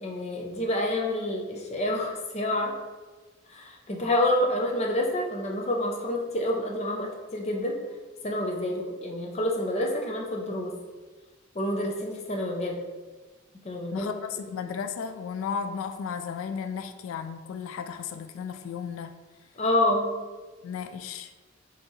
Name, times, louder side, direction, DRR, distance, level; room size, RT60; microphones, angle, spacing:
voice 1, 0.0-2.8 3.5-7.8 8.2-10.8 11.5-12.8 13.6-14.1 19.6-20.1, left 1 dB, 30° left, 1 dB, 0.5 m, -28 dB
voice 2, 13.9-19.1 20.6-21.3, left 6 dB, 90° left, 8 dB, 0.3 m, -34 dB
4.3 x 2.8 x 3.1 m, 1.3 s
head